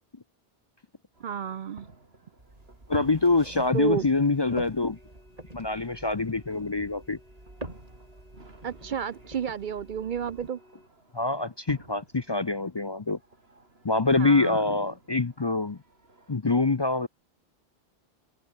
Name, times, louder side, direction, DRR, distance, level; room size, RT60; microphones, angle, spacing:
sound 1, 1.1-16.4, right 2 dB, 85° right, 3.8 m, -52 dB
voice 1, 1.2-1.9 3.7-4.1 8.6-10.6 14.2-14.7, right 8 dB, 55° right, 0.7 m, -31 dB
sound 2, 2.4-10.5, right 2 dB, 40° right, 3.6 m, -46 dB
voice 2, 2.9-5.0 5.5-7.2 11.1-13.2 13.8-15.8 16.3-17.1, left 3 dB, 30° left, 0.6 m, -25 dB
sound 3, 3.7-10.9, left 1 dB, 75° left, 6.6 m, -59 dB
omnidirectional pair, 1.0 m